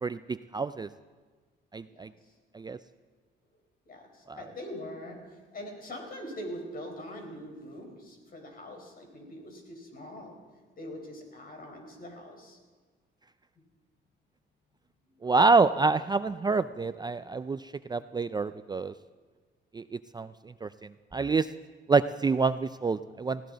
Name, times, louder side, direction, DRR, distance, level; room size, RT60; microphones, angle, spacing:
voice 1, 0.0-0.9 1.7-2.1 2.5-2.8 4.3-4.4 15.2-18.9 19.7-20.3 20.6-20.7 21.1-21.5 21.9-23.4, right 4 dB, 20° right, 12 dB, 0.4 m, -27 dB
voice 2, 3.9-10.3 10.8-12.6 15.2-15.3, equal, 50° left, 3 dB, 4.6 m, -43 dB
19.5 x 16.5 x 4.0 m, 1.4 s
cardioid pair, 90°, 20 cm